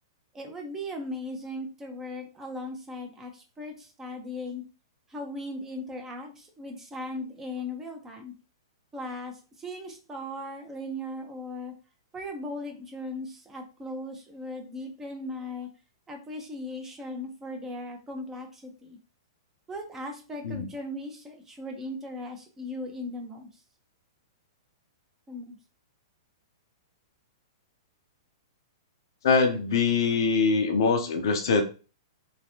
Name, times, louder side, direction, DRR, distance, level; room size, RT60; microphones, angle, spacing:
voice 1, 0.3-4.6 5.1-8.3 8.9-11.7 12.1-15.7 16.1-19.0 19.7-23.5 25.3-25.6, left 1 dB, 15° right, 2 dB, 0.9 m, -38 dB
voice 2, 29.2-31.6, left 5 dB, 60° left, 5 dB, 0.8 m, -23 dB
3.2 x 3.1 x 2.8 m, 0.34 s
hypercardioid pair, 110°, 3 cm